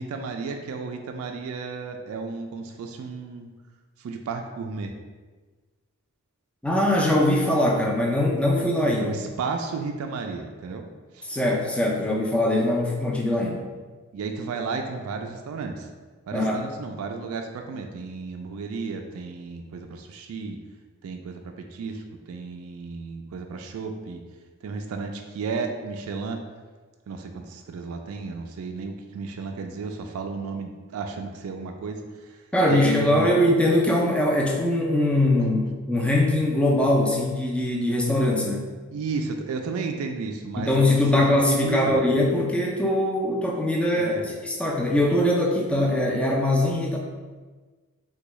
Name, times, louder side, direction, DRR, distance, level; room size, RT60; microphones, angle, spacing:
voice 1, 0.0-3.5 4.0-4.9 9.0-10.8 11.1-11.3 14.1-15.9 16.3-20.6 21.0-22.0 22.3-24.2 24.6-26.4 27.1-32.0 32.3-32.4 32.7-33.3 35.4-35.5 38.9-42.0 44.0-44.2, right 4 dB, 70° right, 5 dB, 0.3 m, -33 dB
voice 2, 6.6-9.1 11.3-13.6 16.3-16.6 32.5-38.7 40.6-47.0, left 1 dB, 5° left, -2 dB, 0.4 m, -22 dB
3.5 x 2.2 x 3.0 m, 1.4 s
head